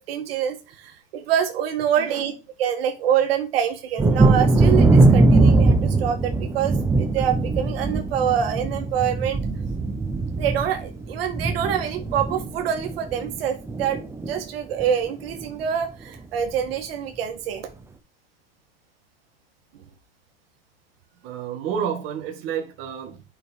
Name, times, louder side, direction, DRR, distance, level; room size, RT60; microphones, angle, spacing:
voice 1, 0.1-2.3 2.6-9.4 10.4-17.7, right 9 dB, 80° right, 1.9 m, -26 dB
Thunder, 4.0-13.4 13.7-14.4 14.8-14.9 15.3-15.5, right 3 dB, 10° right, 0.7 m, -20 dB
voice 2, 21.2-23.2, right 8 dB, 45° right, 2.0 m, -30 dB
8.6 x 5.5 x 4.7 m
supercardioid pair, 145°, 29 cm